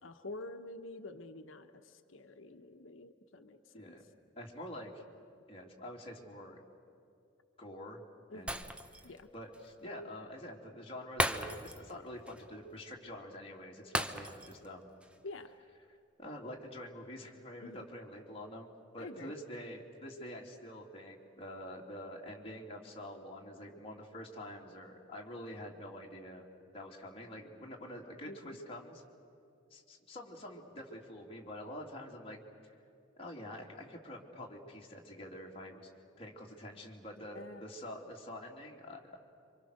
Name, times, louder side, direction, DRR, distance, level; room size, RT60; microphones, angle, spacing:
voice 1, 0.0-4.0 8.3-8.6 9.0-9.3 15.2-15.5 17.6-17.9 19.0-19.3 28.2-28.6 37.2-37.7, left 2 dB, 90° left, 5 dB, 1.1 m, -48 dB
voice 2, 4.4-5.0 5.5-6.6 7.6-8.0 8.3-8.6 9.0-14.9 16.2-26.4 26.7-29.0 29.7-32.4 32.6-32.7 33.2-35.9 36.2-39.2, left 1 dB, 30° left, -1 dB, 2.9 m, -47 dB
Shatter, 8.5-9.2 9.5-9.7 11.2-12.0 12.3-12.4 13.9-14.7 15.0-15.2, right 1 dB, 5° right, 0.8 m, -35 dB
27.5 x 25.0 x 6.6 m, 2.7 s
head